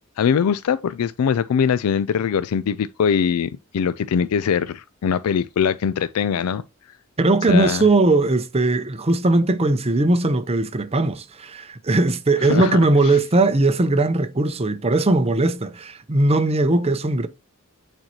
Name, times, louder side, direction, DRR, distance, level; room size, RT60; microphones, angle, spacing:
voice 1, 0.2-6.6 7.5-7.8 12.4-13.2, left 7 dB, 85° left, 0.4 m, -22 dB
voice 2, 7.2-17.3, right 2 dB, 30° right, 0.7 m, -19 dB
8.7 x 4.5 x 2.9 m
head